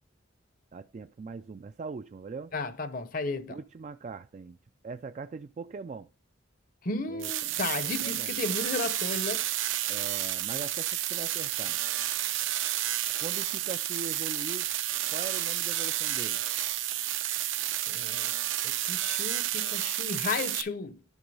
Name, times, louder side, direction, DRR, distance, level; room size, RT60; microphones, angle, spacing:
voice 1, 0.7-2.5 3.5-4.6 4.8-6.1 7.1-8.4 9.9-11.8 13.2-14.7 15.1-16.4, right 4 dB, 35° right, 0.3 m, -41 dB
voice 2, 2.5-3.6 6.8-9.4 17.9-18.3 18.6-21.0, left 3 dB, 45° left, 0.7 m, -34 dB
sound 1, 7.2-20.6, right 13 dB, 75° right, 0.7 m, -31 dB
11.0 x 3.7 x 5.4 m
head